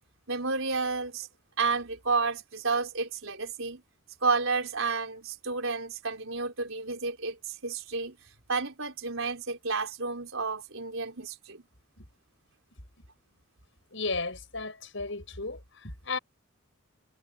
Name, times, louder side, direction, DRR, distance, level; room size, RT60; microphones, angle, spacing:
voice 1, 0.3-1.3 1.6-3.8 4.2-8.2 8.5-11.6, right 4 dB, 70° right, 4.4 m, -31 dB
voice 2, 13.9-16.2, left 3 dB, 60° left, 8.0 m, -34 dB
head